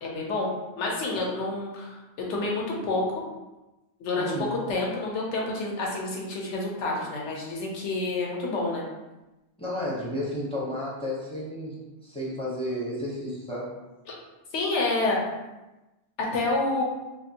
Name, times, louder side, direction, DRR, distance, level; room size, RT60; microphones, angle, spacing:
voice 1, 0.0-3.2 4.0-8.8 14.5-15.2 16.2-16.8, left 2 dB, 85° left, -2 dB, 1.0 m, -28 dB
voice 2, 4.2-4.5 9.6-11.8 12.0-13.7, left 1 dB, 5° left, -7 dB, 0.4 m, -32 dB
2.5 x 2.4 x 2.7 m, 1.0 s
omnidirectional pair, 1.2 m